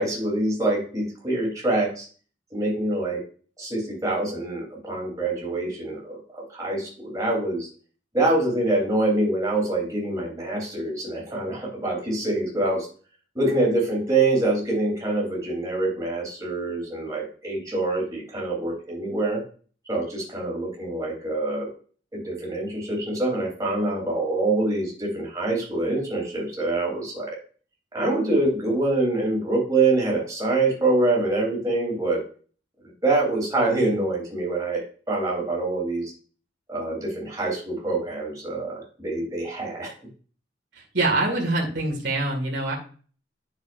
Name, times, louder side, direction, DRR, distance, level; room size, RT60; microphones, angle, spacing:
voice 1, 0.0-2.1 2.5-3.2 3.6-7.7 8.1-12.9 13.4-19.4 19.9-21.7 22.1-27.4 27.9-32.2 33.0-36.1 36.7-39.9, right 2 dB, 20° right, -3 dB, 3.4 m, -25 dB
voice 2, 40.7-42.7, right 2 dB, 70° right, -2 dB, 2.1 m, -25 dB
9.1 x 6.7 x 2.6 m, 0.41 s
head